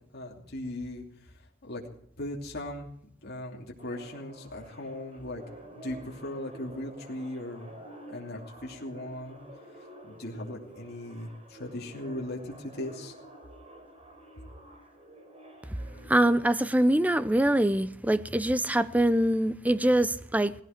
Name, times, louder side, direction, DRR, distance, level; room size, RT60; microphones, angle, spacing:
voice 1, 0.1-1.8 2.2-2.9 3.2-9.4 9.7-13.2, left 1 dB, 55° left, 2.9 m, -39 dB
sound 1, 3.8-16.4, right 1 dB, 30° right, 3.9 m, -49 dB
voice 2, 16.0-20.5, right 1 dB, 10° right, 0.6 m, -24 dB
18.5 x 16.0 x 4.5 m
head